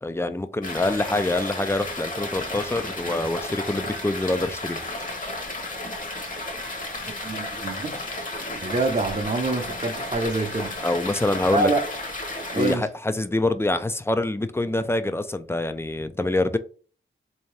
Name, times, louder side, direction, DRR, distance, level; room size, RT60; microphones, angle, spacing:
voice 1, 0.0-4.8 10.8-11.7 12.5-16.6, left 2 dB, 10° left, 0.4 m, -25 dB
sound 1, 0.6-12.8, left 2 dB, 40° left, 1.1 m, -33 dB
voice 2, 7.2-8.0 8.6-10.7 11.5-11.9 12.5-12.9, right 2 dB, 35° right, 0.7 m, -26 dB
3.4 x 2.8 x 3.2 m
cardioid pair, 65°, 21 cm